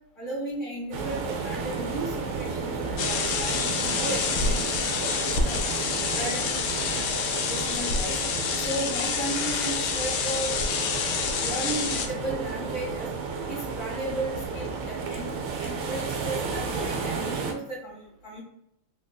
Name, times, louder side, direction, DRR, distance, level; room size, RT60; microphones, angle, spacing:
voice 1, 0.2-5.6 6.0-6.6 6.9-8.2 8.6-10.5 11.4-13.1 13.5-18.4, right 1 dB, 35° left, -7 dB, 1.8 m, -35 dB
sound 1, 0.9-17.5, right 4 dB, 85° right, 1.5 m, -32 dB
sound 2, 3.0-12.1, left 5 dB, 75° left, 1.1 m, -28 dB
4.0 x 2.6 x 2.3 m, 0.80 s
omnidirectional pair, 2.4 m